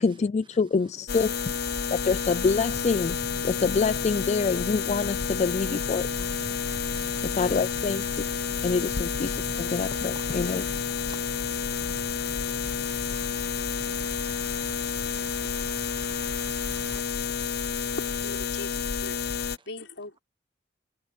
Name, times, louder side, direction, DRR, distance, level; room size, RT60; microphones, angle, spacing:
voice 1, 0.0-1.5 1.9-3.2 3.4-6.3 7.2-8.3 8.6-10.7, left 4 dB, 40° left, 0.3 m, -26 dB
sound 1, 1.1-19.6, left 6 dB, 60° left, 0.8 m, -30 dB
sound 2, 2.4-17.0, right 2 dB, 80° right, 2.2 m, -43 dB
voice 2, 6.9-7.4 8.2-8.6 10.1-10.8 11.1-11.9 19.6-19.7, right 4 dB, 30° right, 1.3 m, -52 dB
voice 3, 18.0-19.2 19.7-20.2, left 2 dB, 85° left, 5.6 m, -39 dB
head